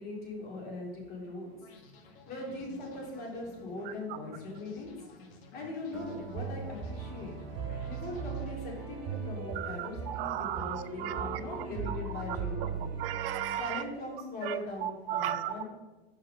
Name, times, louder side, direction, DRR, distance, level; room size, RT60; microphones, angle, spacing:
voice 1, 0.0-1.5 2.3-4.9 5.5-7.3 7.9-12.9 13.6-15.6, left 2 dB, 30° left, 2.4 m, -40 dB
sound 1, 1.6-9.3, left 3 dB, 55° left, 1.3 m, -55 dB
Acoustic guitar, 5.9-10.4, right 7 dB, ahead, 1.6 m, -51 dB
sound 2, 6.3-13.5, right 5 dB, 40° right, 2.3 m, -38 dB
voice 2, 9.5-12.0 12.6-12.7 13.0-13.8 14.4-15.6, right 12 dB, 65° right, 0.6 m, -35 dB
5.7 x 4.7 x 5.3 m
supercardioid pair, 135°, 32 cm